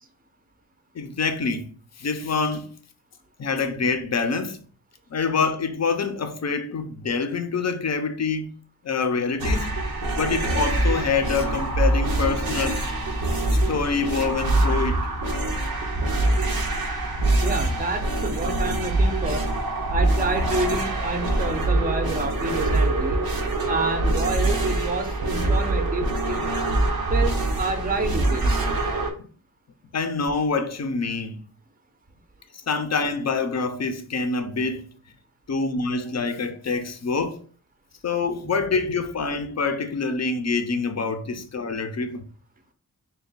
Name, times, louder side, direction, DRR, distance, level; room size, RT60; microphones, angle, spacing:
voice 1, 0.9-1.7 2.0-2.7 3.4-4.6 5.1-8.6 8.8-9.7 10.2-12.8 13.7-15.1 29.9-31.4 32.7-34.9 35.5-37.4 38.0-42.2, left 4 dB, 45° left, 0.6 m, -26 dB
sound 1, 9.4-29.1, right 2 dB, 90° right, 0.7 m, -24 dB
voice 2, 17.4-19.5 19.9-23.2 23.7-26.3 27.1-28.5, right 3 dB, 25° right, 0.5 m, -28 dB
3.3 x 2.3 x 3.9 m
wide cardioid pair, 70°, 35 cm